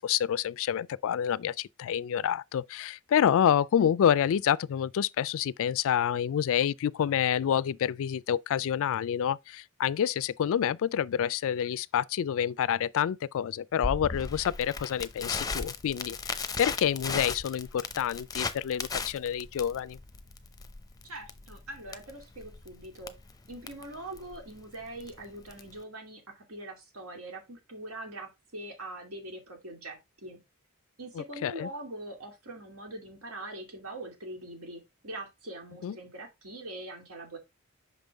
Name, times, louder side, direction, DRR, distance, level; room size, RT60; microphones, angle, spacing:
voice 1, 0.0-20.0 31.2-31.7 35.8-35.9, left 9 dB, 65° left, 0.3 m, -28 dB
Crackle, 13.8-25.8, left 4 dB, 15° left, 0.6 m, -37 dB
voice 2, 21.0-23.1 23.5-30.4 31.0-37.4, right 1 dB, 75° right, 2.3 m, -43 dB
5.9 x 5.3 x 3.4 m
head